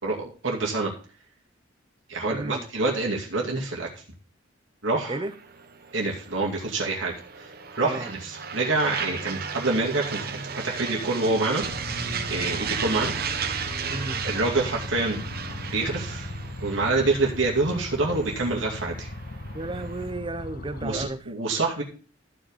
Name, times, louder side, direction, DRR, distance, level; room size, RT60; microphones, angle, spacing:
voice 1, 0.0-0.9 2.1-3.9 4.8-5.2 5.9-11.6 12.3-13.1 14.2-15.2 15.7-16.3 16.6-19.1 20.8-21.8, right 3 dB, 80° right, 2.4 m, -26 dB
voice 2, 2.3-2.6 5.1-5.3 7.8-8.1 13.9-14.3 19.5-21.2, right 2 dB, 25° right, 0.6 m, -33 dB
sound 1, 5.3-20.1, right 6 dB, 55° right, 1.1 m, -35 dB
sound 2, 11.6-21.1, left 1 dB, 50° left, 1.2 m, -38 dB
13.5 x 5.0 x 5.5 m
head